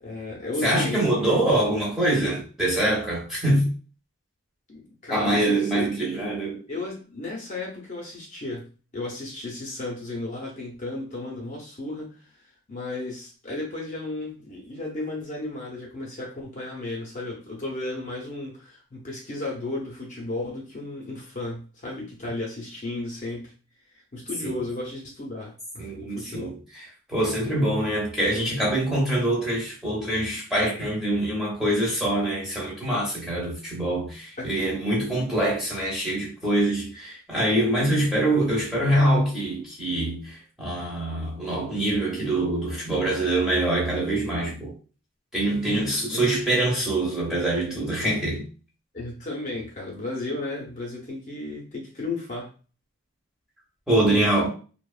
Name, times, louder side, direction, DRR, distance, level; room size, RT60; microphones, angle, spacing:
voice 1, 0.0-1.4 4.7-5.9 6.7-12.4 12.7-23.5 23.9-26.5 34.4-34.5 46.1-46.3 48.9-52.5 54.1-54.3, left 2 dB, 35° left, 0.6 m, -34 dB
voice 2, 0.6-3.7 5.1-6.6 24.4-24.6 25.8-26.8 27.1-44.8 45.3-48.5 53.9-54.5, right 1 dB, ahead, 0.7 m, -24 dB
2.8 x 2.0 x 2.3 m
head